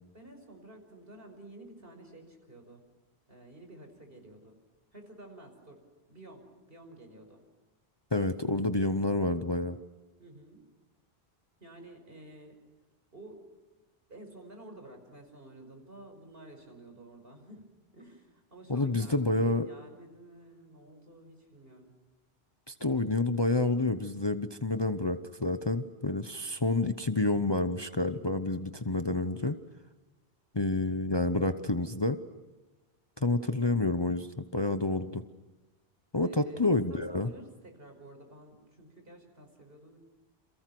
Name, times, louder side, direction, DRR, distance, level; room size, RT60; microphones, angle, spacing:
voice 1, 0.1-2.8 3.3-4.6 4.9-5.8 6.1-7.4 10.2-10.6 11.6-12.6 13.1-13.4 14.1-17.7 17.9-22.0 33.2-33.6 36.2-40.0, right 1 dB, 60° right, 5 dB, 5.7 m, -51 dB
voice 2, 8.1-9.8 18.7-19.7 22.7-29.6 30.5-32.2 33.2-35.2 36.1-37.3, left 2 dB, 25° left, 9 dB, 0.9 m, -29 dB
29.5 x 28.0 x 6.1 m, 1.2 s
omnidirectional pair, 1.1 m